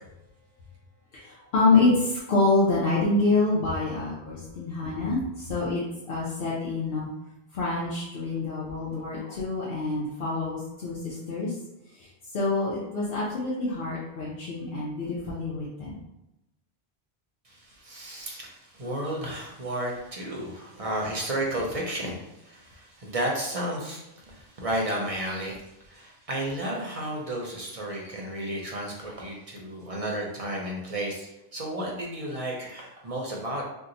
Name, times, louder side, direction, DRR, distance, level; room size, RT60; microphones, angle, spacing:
voice 1, 1.1-5.8 6.1-7.1 7.5-11.5 12.3-15.9, left 3 dB, 70° left, -7 dB, 0.9 m, -26 dB
voice 2, 17.4-33.6, right 1 dB, 45° right, -1 dB, 0.5 m, -33 dB
2.8 x 2.2 x 3.7 m, 0.92 s
omnidirectional pair, 1.1 m